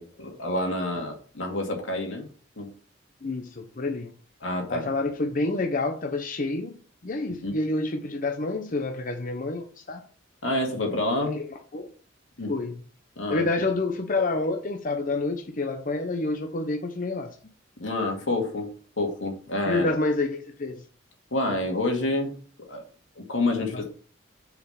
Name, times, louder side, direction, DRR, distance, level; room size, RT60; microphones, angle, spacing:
voice 1, 0.0-2.3 2.6-2.7 4.4-4.9 7.4-7.6 10.4-11.4 12.4-12.5 13.2-13.5 17.8-18.7 19.0-19.9 21.3-22.4 22.7-22.8 23.2-23.9, left 2 dB, 90° left, 1 dB, 2.2 m, -28 dB
voice 2, 3.2-4.1 4.7-10.0 11.3-11.9 12.5-12.8 13.3-17.4 19.7-20.8 23.6-23.9, left 2 dB, 45° left, 4 dB, 0.8 m, -28 dB
6.5 x 5.0 x 5.8 m, 0.43 s
head